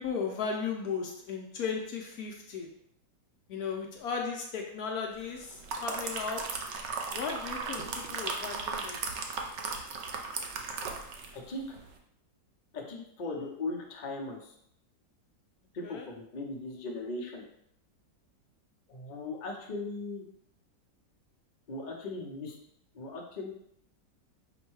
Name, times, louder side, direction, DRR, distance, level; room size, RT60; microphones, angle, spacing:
voice 1, 0.0-2.7 3.5-6.4 7.1-9.0 15.8-16.1, left 5 dB, 70° left, 1 dB, 0.9 m, -36 dB
sound 1, 5.4-11.4 11.7-11.9, right 4 dB, 80° right, 0.6 m, -36 dB
voice 2, 11.3-11.6 12.7-14.5 15.7-17.4 18.9-20.3 21.7-22.5 22.9-23.5, left 2 dB, 45° left, -1 dB, 0.6 m, -38 dB
5.1 x 2.2 x 4.6 m, 0.72 s
omnidirectional pair, 1.9 m